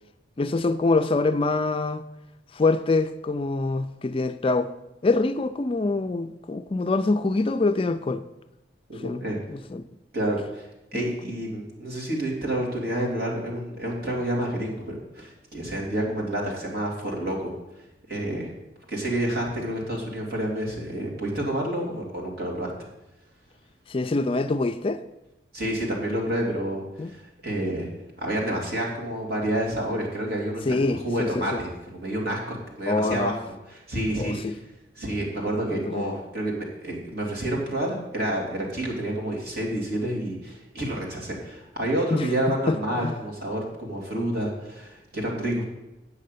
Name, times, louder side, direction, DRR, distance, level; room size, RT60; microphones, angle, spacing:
voice 1, 0.4-2.0 2.5-4.7 5.0-8.2 9.0-9.2 9.5-9.8 10.9-11.1 23.9-25.0 27.0-27.1 30.6-31.6 32.9-33.4 34.2-34.6 35.7-36.2 42.1-42.3 42.7-43.1, left 3 dB, 30° left, 0.4 m, -25 dB
voice 2, 8.9-9.4 10.1-18.5 18.9-22.9 25.5-27.9 28.2-33.3 33.7-34.6 35.0-45.7, right 1 dB, 55° right, 3.0 m, -29 dB
8.4 x 6.5 x 8.3 m
head